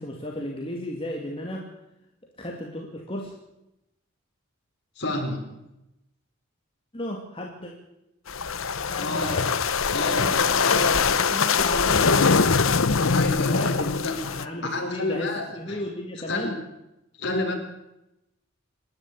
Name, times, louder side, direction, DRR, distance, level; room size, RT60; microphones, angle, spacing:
voice 1, 0.0-1.7 2.4-3.3 6.9-7.7 8.9-9.5 10.0-12.5 13.5-16.6, left 1 dB, 25° left, 0 dB, 2.5 m, -34 dB
voice 2, 5.0-5.5 9.0-9.4 9.9-10.9 13.1-14.1 14.6-15.8 16.3-16.5 17.2-17.5, left 2 dB, 50° left, 0 dB, 4.4 m, -30 dB
sound 1, 8.3-14.5, left 5 dB, 70° left, 1.0 m, -22 dB
27.5 x 11.0 x 8.6 m, 0.90 s
head